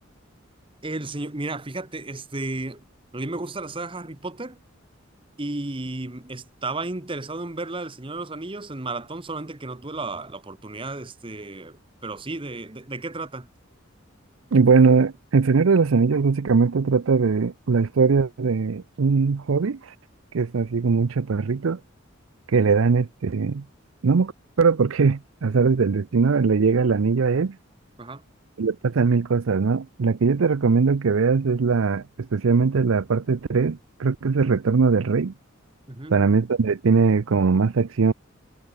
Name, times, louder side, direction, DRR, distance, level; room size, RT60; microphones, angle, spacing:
voice 1, 0.8-2.8 3.1-4.6 5.4-13.5 28.0-28.2 35.9-36.2, right 2 dB, 25° right, 1.2 m, -33 dB
voice 2, 14.5-19.9 20.3-21.8 22.5-23.6 24.0-24.3 24.6-27.6 28.6-35.3 36.1-38.1, right 5 dB, 80° right, 0.5 m, -20 dB
head